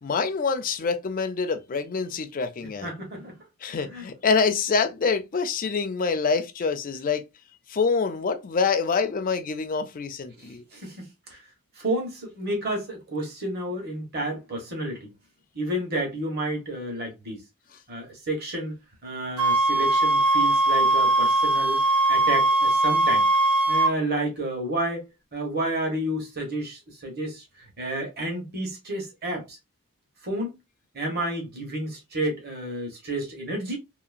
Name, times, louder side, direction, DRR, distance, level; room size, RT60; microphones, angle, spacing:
voice 1, 0.0-2.9 3.6-7.2 7.7-10.6, left 5 dB, 40° left, 0.4 m, -26 dB
voice 2, 2.8-3.4 3.8-4.1 10.4-11.4 11.8-15.1 15.5-17.4 17.9-18.8 19.0-21.8 22.1-23.3 23.7-27.4 27.8-29.6 30.2-30.6 30.9-33.8, right 1 dB, 45° right, 1.3 m, -31 dB
sound 1, 19.4-23.9, right 2 dB, 80° right, 0.7 m, -20 dB
2.9 x 2.8 x 2.4 m
head